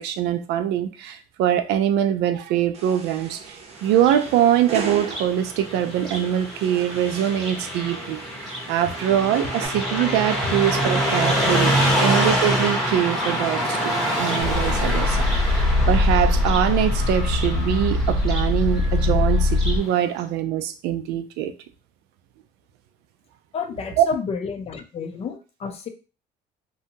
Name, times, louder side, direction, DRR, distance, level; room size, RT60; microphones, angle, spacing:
voice 1, 0.0-11.7 12.0-15.3 15.5-21.5 24.0-24.1, right 10 dB, 80° right, 0.4 m, -23 dB
sound 1, 2.7-9.7, right 5 dB, 40° right, 0.7 m, -38 dB
Car passing by, 3.9-19.9, equal, ahead, 0.8 m, -26 dB
sound 2, 14.4-19.8, left 2 dB, 80° left, 1.1 m, -21 dB
voice 2, 23.5-25.9, left 5 dB, 40° left, 0.5 m, -30 dB
2.7 x 2.2 x 2.7 m
cardioid pair, 125°, 17 cm